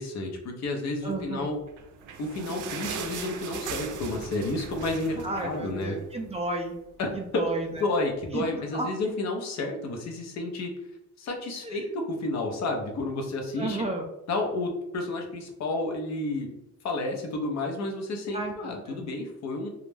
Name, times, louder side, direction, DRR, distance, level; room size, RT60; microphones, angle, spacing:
voice 1, 0.0-1.6 2.2-6.0 7.0-7.4 7.8-10.7 11.2-13.9 14.3-16.5 16.8-19.7, left 2 dB, 60° left, 2 dB, 0.7 m, -31 dB
voice 2, 1.0-1.5 5.2-6.8 7.1-7.9 8.3-8.5 8.7-8.9 11.6-11.8 13.6-14.1 18.3-18.5 18.9-19.1, right 2 dB, 20° right, 2 dB, 0.4 m, -32 dB
sound 1, 1.6-6.4 6.7-6.8 7.1-7.3 8.0-8.1, right 5 dB, 80° right, 0.5 m, -38 dB
2.3 x 2.1 x 3.2 m, 0.86 s
cardioid pair, 90°, 30 cm